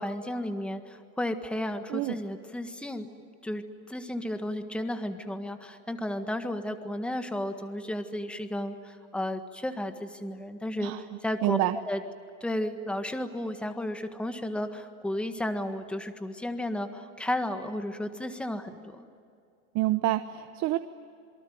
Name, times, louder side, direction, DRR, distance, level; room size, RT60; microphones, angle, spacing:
voice 1, 0.0-3.1 3.4-10.9 11.2-12.0 12.4-19.0, left 1 dB, 5° left, 8 dB, 1.6 m, -33 dB
voice 2, 11.4-11.8 19.7-20.8, right 16 dB, 40° right, 11 dB, 1.0 m, -27 dB
27.0 x 24.0 x 9.3 m, 2.5 s
supercardioid pair, 130°, 42 cm